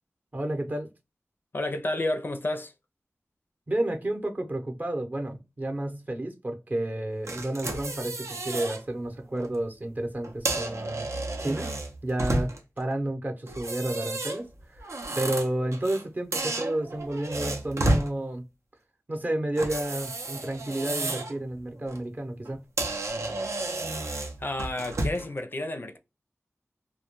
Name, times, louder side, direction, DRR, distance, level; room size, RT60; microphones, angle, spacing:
voice 1, 0.3-0.9 3.7-11.0 11.4-11.7 12.0-12.5 12.8-14.5 14.7-14.8 15.2-18.4 19.1-22.6, right 1 dB, 35° right, 0.7 m, -31 dB
voice 2, 1.5-2.7 24.4-26.0, left 1 dB, 45° left, 0.4 m, -30 dB
sound 1, 7.3-8.8 9.2-9.5 10.2-12.8 13.5-16.0 16.3-18.1 19.5-21.4 21.7-22.0 22.4-22.5 22.8-25.3, right 2 dB, 85° right, 0.6 m, -31 dB
2.2 x 2.1 x 2.9 m
wide cardioid pair, 65°, 5 cm